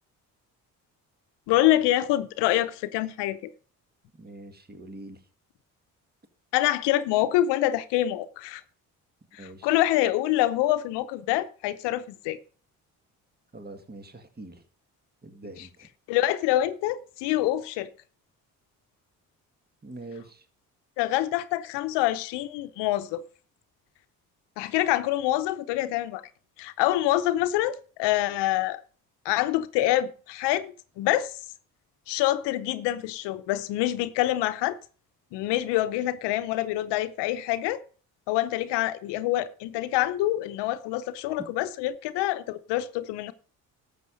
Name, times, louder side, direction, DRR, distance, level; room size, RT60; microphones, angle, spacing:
voice 1, 1.5-3.4 6.5-8.6 9.6-12.4 16.1-17.9 21.0-23.2 24.6-26.2 26.6-28.8 29.2-31.3 32.1-34.8 35.3-37.8 38.3-43.3, left 14 dB, 80° left, 0.8 m, -26 dB
voice 2, 4.1-5.3 9.4-9.8 13.5-14.6 15.2-15.9 19.8-20.5, right 2 dB, 25° right, 1.8 m, -44 dB
12.5 x 7.4 x 5.1 m
hypercardioid pair, 50°, 41 cm